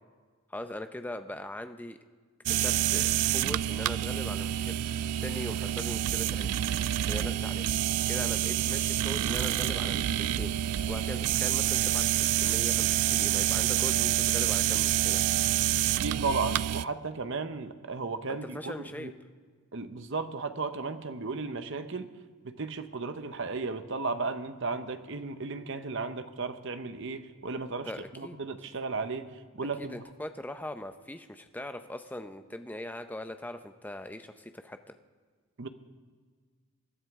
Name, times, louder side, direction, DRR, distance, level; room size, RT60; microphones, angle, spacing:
voice 1, 0.5-2.0 2.5-6.5 7.1-7.7 8.1-15.2 18.3-19.1 27.8-28.4 29.8-34.9, left 1 dB, 10° left, 8 dB, 0.5 m, -40 dB
sound 1, 2.5-16.9, right 12 dB, 85° right, 0.3 m, -28 dB
voice 2, 16.0-19.1 19.7-22.1 22.4-27.9 28.2-29.3 29.6-30.0 35.6-35.7, right 4 dB, 55° right, 10 dB, 0.8 m, -34 dB
20.5 x 12.5 x 3.6 m, 1.5 s
head